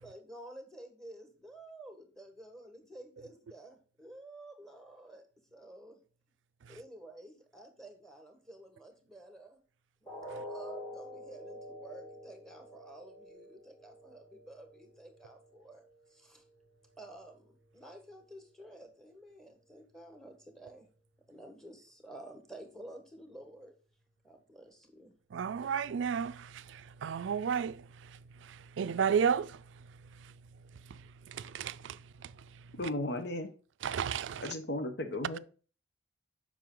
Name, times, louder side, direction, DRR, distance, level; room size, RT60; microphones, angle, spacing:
voice 1, 0.0-5.2 5.5-6.0 6.7-9.6 10.3-15.8 16.1-16.4 17.0-20.9 21.3-23.7 24.2-25.1, right 1 dB, 5° left, 1.4 m, -51 dB
sound 1, 10.1-16.0 16.4-16.6 17.1-17.2, left 1 dB, 20° left, 2.2 m, -47 dB
voice 2, 25.3-29.6 30.9-31.0 31.3-32.3 33.8-34.5, right 7 dB, 85° right, 0.4 m, -33 dB
voice 3, 32.8-33.5 34.4-35.4, left 1 dB, 65° left, 1.0 m, -35 dB
7.5 x 5.8 x 3.8 m
head